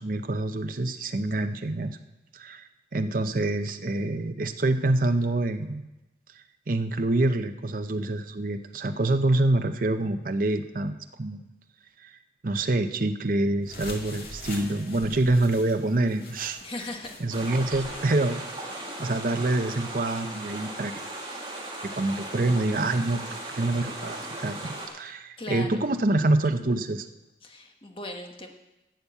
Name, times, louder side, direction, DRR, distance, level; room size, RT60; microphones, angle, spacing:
voice 1, 0.0-2.0 2.3-5.9 6.7-10.9 11.2-11.5 12.0-12.1 12.4-16.6 17.2-18.4 19.0-20.9 22.0-27.1, right 2 dB, 50° right, 7 dB, 0.7 m, -26 dB
sound 1, 13.6-18.1, left 2 dB, 55° left, 2.1 m, -43 dB
voice 2, 16.6-17.6 25.4-25.9 27.4-28.5, left 2 dB, 30° left, 3 dB, 1.2 m, -39 dB
sound 2, 17.3-24.9, right 2 dB, 25° right, 2.1 m, -37 dB
12.0 x 7.0 x 8.0 m, 0.99 s
head